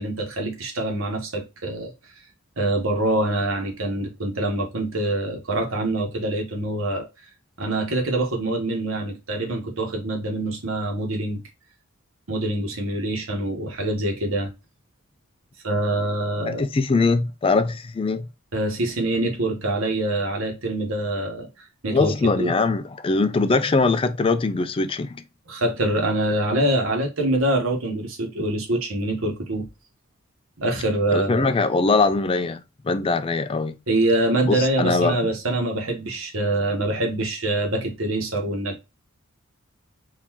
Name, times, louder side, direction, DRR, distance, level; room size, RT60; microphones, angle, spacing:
voice 1, 0.0-1.9 2.6-7.1 7.6-11.4 12.3-14.5 15.6-16.6 18.5-22.5 25.5-29.7 30.6-31.5 33.9-38.8, right 1 dB, 75° right, 1.1 m, -25 dB
voice 2, 16.5-18.3 21.9-25.2 31.1-33.8 34.4-35.3, left 3 dB, 25° left, 0.3 m, -22 dB
3.7 x 2.6 x 2.9 m
head